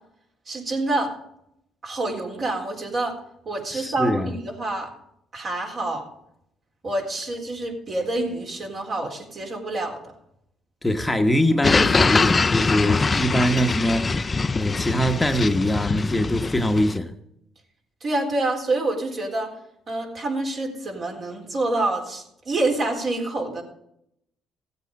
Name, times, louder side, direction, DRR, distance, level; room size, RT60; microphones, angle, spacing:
voice 1, 0.5-1.1 1.8-3.2 3.5-4.9 5.3-6.1 6.8-10.0 18.0-19.5 19.9-23.6, right 2 dB, 45° right, 4.0 m, -27 dB
voice 2, 3.7-4.3 10.8-14.1 14.6-17.1, equal, 10° left, 1.1 m, -22 dB
sound 1, 11.6-17.0, left 4 dB, 30° left, 0.5 m, -23 dB
15.0 x 8.2 x 5.4 m
cardioid pair, 85°, 0 cm